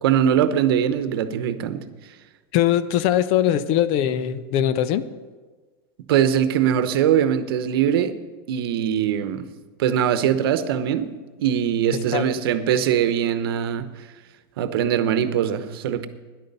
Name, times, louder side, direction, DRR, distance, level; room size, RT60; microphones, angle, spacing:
voice 1, 0.0-1.8 6.1-8.2 8.5-9.5 9.8-11.1 11.4-14.1 14.6-16.1, right 9 dB, 80° right, 11 dB, 0.9 m, -21 dB
voice 2, 2.5-5.1 12.1-12.3, left 11 dB, 55° left, 14 dB, 0.7 m, -21 dB
13.0 x 10.5 x 5.4 m, 1.4 s
supercardioid pair, 125°, 12 cm